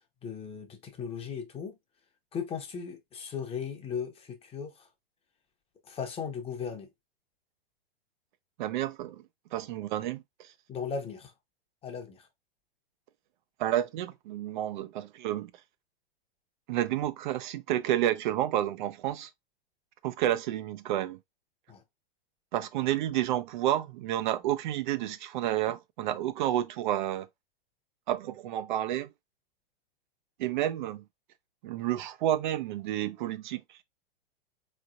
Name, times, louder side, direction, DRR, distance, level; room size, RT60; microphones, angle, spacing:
voice 1, 0.2-1.7 2.3-4.9 5.9-6.9 10.7-11.3 11.8-12.3 21.7-21.8, left 6 dB, 20° left, 0.9 m, -37 dB
voice 2, 8.6-9.2 9.5-10.5 13.6-15.5 16.7-19.3 20.0-21.2 22.5-27.3 28.1-29.1 30.4-31.0 31.6-33.8, right 12 dB, 55° right, 0.5 m, -30 dB
4.0 x 3.2 x 2.5 m
hypercardioid pair, 120°, 29 cm